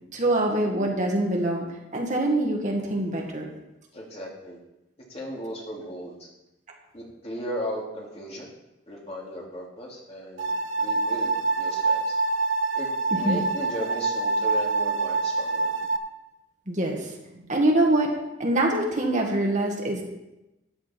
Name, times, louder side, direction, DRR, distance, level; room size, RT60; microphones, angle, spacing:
voice 1, 0.1-1.7 1.9-3.5 13.1-13.4 16.7-17.1 17.5-18.1 18.4-20.0, right 1 dB, 40° right, 1 dB, 1.7 m, -24 dB
voice 2, 3.9-4.6 5.1-6.3 6.9-8.5 8.9-12.2 12.7-12.9 13.1-15.7, equal, 30° left, -2 dB, 2.7 m, -36 dB
sound 1, 10.4-16.0, right 3 dB, 90° right, 1.0 m, -26 dB
13.0 x 10.0 x 4.4 m, 0.95 s
head